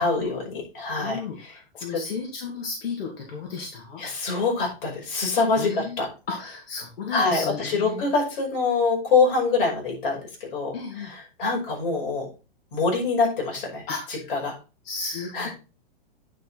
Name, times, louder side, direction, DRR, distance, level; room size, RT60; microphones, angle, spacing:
voice 1, 0.0-1.6 1.9-2.0 4.0-6.1 7.1-10.2 10.5-10.7 11.0-12.3 12.7-13.8 14.1-14.5 15.3-15.5, left 4 dB, 60° left, -1 dB, 5.6 m, -25 dB
voice 2, 1.0-4.0 5.5-6.0 6.3-8.1 10.7-11.1 13.9-14.1 14.8-15.5, left 5 dB, 85° left, -1 dB, 2.7 m, -33 dB
9.4 x 5.6 x 4.1 m, 0.31 s
supercardioid pair, 165°, 29 cm